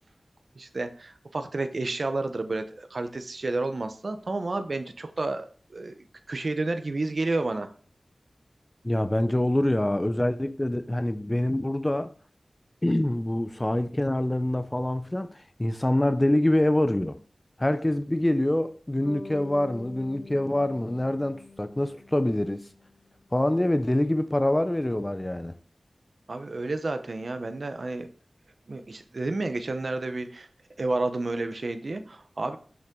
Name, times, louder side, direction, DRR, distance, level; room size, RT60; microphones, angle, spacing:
voice 1, 0.5-6.0 6.3-7.7 26.3-28.1 28.7-30.5 30.8-32.6, right 2 dB, 65° right, 0.9 m, -30 dB
voice 2, 8.8-12.1 12.8-17.2 17.6-22.7 23.3-25.5, left 1 dB, 20° left, 0.6 m, -25 dB
Bass guitar, 19.0-23.2, left 2 dB, 70° left, 1.3 m, -45 dB
7.2 x 6.4 x 3.8 m
wide cardioid pair, 60°, 0 cm